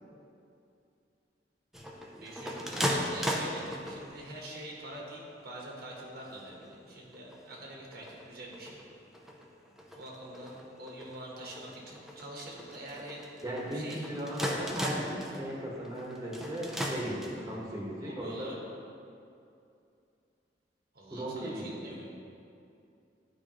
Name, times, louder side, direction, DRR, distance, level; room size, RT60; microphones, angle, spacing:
sound 1, 1.7-4.3 4.9-5.4 5.9-6.0 6.2-6.7 7.1-17.6, equal, ahead, 0.6 m, -38 dB
voice 1, 2.2-8.8 9.9-13.2 13.5-14.1 14.4-14.5 18.1-18.6 20.9-22.2, right 1 dB, 60° right, -2 dB, 1.2 m, -45 dB
voice 2, 13.4-18.5 21.1-22.0, right 1 dB, 20° right, -5 dB, 1.3 m, -37 dB
11.5 x 4.9 x 3.0 m, 2.5 s
head